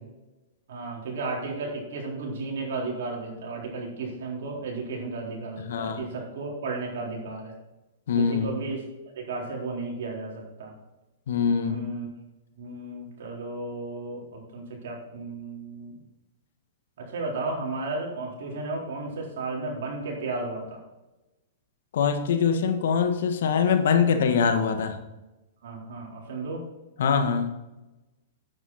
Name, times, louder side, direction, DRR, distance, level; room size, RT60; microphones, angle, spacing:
voice 1, 0.7-7.5 8.2-8.8 9.1-10.7 11.6-12.1 12.6-16.0 17.0-20.8 25.6-26.6, right 3 dB, 70° right, -2 dB, 4.0 m, -34 dB
voice 2, 5.7-6.0 8.1-8.5 11.3-11.8 21.9-25.0 27.0-27.5, left 6 dB, 70° left, 7 dB, 1.5 m, -23 dB
9.3 x 8.8 x 4.2 m, 1.0 s
hypercardioid pair, 125°, 0 cm